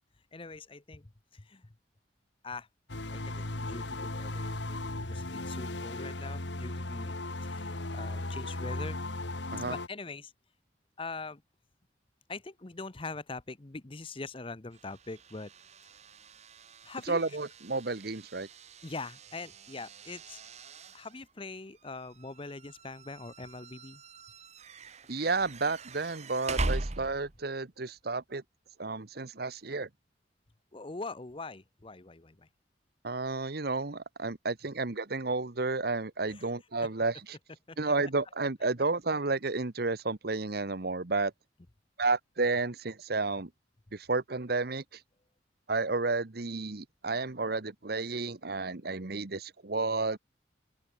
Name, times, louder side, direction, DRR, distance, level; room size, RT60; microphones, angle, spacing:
voice 1, 0.3-1.7 2.4-2.7 3.1-7.1 7.4-9.0 9.7-10.3 11.0-11.4 12.3-15.5 16.8-17.2 18.8-20.4 20.9-24.0 30.7-32.5 36.3-36.4 37.7-37.8, left 3 dB, 30° left, 0.9 m, -43 dB
sound 1, 2.9-9.9, left 2 dB, 75° left, 2.4 m, -36 dB
sound 2, 14.7-27.5, right 2 dB, 35° right, 1.3 m, -41 dB
voice 2, 17.1-18.5 25.1-28.4 28.8-29.9 33.0-37.4 37.8-41.3 42.0-43.5 43.9-44.8 45.7-50.2, right 3 dB, 55° right, 1.1 m, -31 dB
open air
head